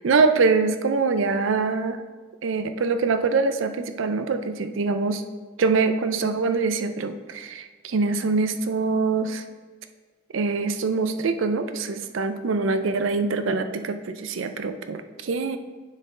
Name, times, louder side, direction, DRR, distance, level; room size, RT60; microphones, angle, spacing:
voice 1, 0.0-2.0 2.4-5.2 5.6-9.4 10.3-15.6, right 4 dB, 70° right, 9 dB, 0.5 m, -24 dB
9.5 x 4.3 x 3.7 m, 1.4 s
head